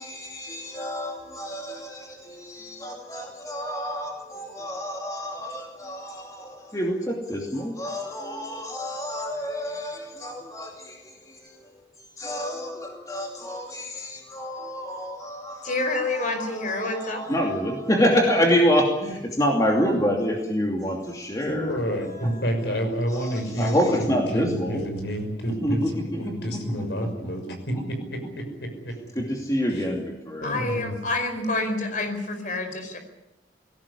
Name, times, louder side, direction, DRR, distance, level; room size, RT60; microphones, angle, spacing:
voice 1, 0.0-22.4 23.1-24.8 25.6-27.8 29.1-30.5, equal, 20° left, 2.7 m, -28 dB
voice 2, 15.6-17.2 30.4-33.0, left 2 dB, 45° left, 4.8 m, -28 dB
voice 3, 21.5-28.9 29.7-30.0 30.4-31.0, equal, 65° left, 6.1 m, -29 dB
20.5 x 17.5 x 10.0 m
head